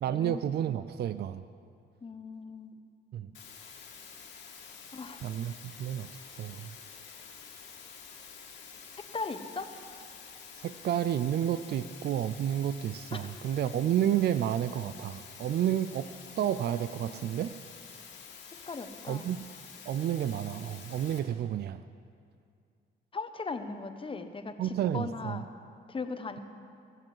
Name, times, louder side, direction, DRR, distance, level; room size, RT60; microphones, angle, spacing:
voice 1, 0.0-1.4 3.1-3.3 5.2-6.7 10.5-16.1 16.4-17.5 19.1-19.4 19.8-21.8 24.6-25.4, right 10 dB, 55° right, 13 dB, 0.4 m, -31 dB
voice 2, 2.0-2.8 4.9-5.2 9.1-9.7 13.1-13.2 18.7-19.3 23.1-25.4 25.9-26.4, left 4 dB, 25° left, 8 dB, 1.1 m, -38 dB
sound 1, 3.3-21.2, left 6 dB, 70° left, 2.4 m, -49 dB
19.0 x 7.5 x 7.7 m, 2.4 s
cardioid pair, 90°, 20 cm